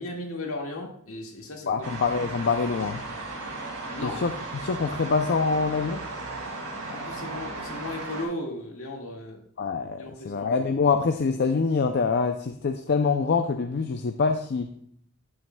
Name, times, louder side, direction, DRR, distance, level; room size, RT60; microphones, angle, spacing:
voice 1, 0.0-1.9 3.9-4.2 6.8-9.4 10.0-10.5, left 1 dB, 70° left, 0 dB, 1.9 m, -36 dB
voice 2, 1.7-3.0 4.0-4.3 4.6-6.0 9.6-14.7, left 4 dB, 50° left, 6 dB, 0.5 m, -25 dB
sound 1, 1.8-8.2, right 2 dB, 75° right, 3.3 m, -36 dB
11.0 x 8.9 x 2.3 m, 0.64 s
head